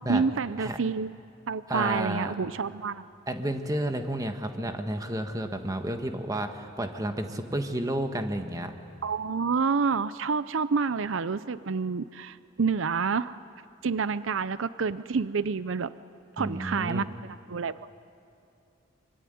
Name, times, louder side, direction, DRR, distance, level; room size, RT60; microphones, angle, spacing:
voice 1, 0.1-1.1 1.5-3.0 9.0-13.4 13.8-15.9 16.4-17.0 17.5-17.9, right 5 dB, 85° right, 15 dB, 0.6 m, -28 dB
voice 2, 1.7-2.3 3.3-8.7 16.4-17.1, right 1 dB, 20° right, 6 dB, 1.5 m, -31 dB
25.0 x 24.0 x 9.4 m, 2.5 s
head